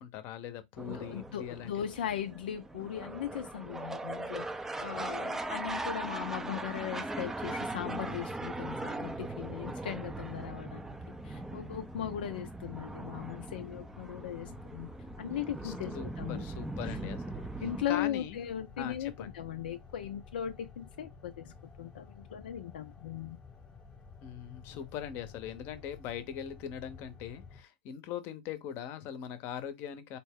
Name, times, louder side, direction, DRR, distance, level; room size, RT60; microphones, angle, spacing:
voice 1, 0.0-1.8 15.6-17.5 17.9-18.5 18.8-19.3 24.2-30.2, left 9 dB, 45° left, 0.7 m, -41 dB
sound 1, 0.8-17.8, right 2 dB, 5° right, 0.4 m, -40 dB
voice 2, 0.9-4.5 4.8-10.9 11.2-14.9 15.2-16.4 16.8-17.2 17.6-23.4, left 10 dB, 70° left, 0.4 m, -38 dB
sound 2, 10.9-27.6, left 5 dB, 20° left, 1.1 m, -53 dB
4.2 x 2.1 x 3.6 m
hypercardioid pair, 105°, 5 cm